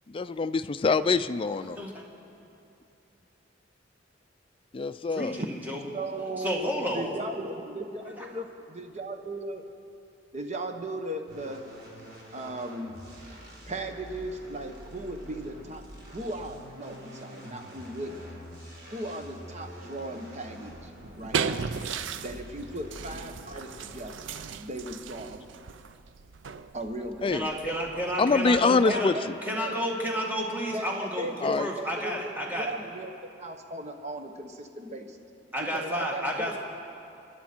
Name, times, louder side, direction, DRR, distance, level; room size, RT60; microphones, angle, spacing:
voice 1, 0.1-1.8 4.7-5.4 27.2-27.5 28.2-29.1 31.4-31.7, left 4 dB, 30° left, 11 dB, 0.4 m, -24 dB
voice 2, 1.6-2.0 5.1-5.8 6.4-7.1 27.3-29.1 29.4-32.7 35.5-36.6, equal, 10° right, -2 dB, 2.0 m, -31 dB
voice 3, 5.9-9.6 10.3-11.7 12.3-13.0 13.7-15.9 16.1-18.4 18.9-21.6 22.2-24.3 24.6-25.4 26.7-27.6 28.8-29.8 30.7-35.2 35.6-36.6, right 1 dB, 35° right, 5 dB, 1.1 m, -37 dB
sound 1, 11.3-24.2, equal, 55° right, 3.6 m, -47 dB
sound 2, 20.9-29.0, right 6 dB, 75° right, 0.5 m, -37 dB
27.0 x 11.5 x 4.5 m, 2.6 s
head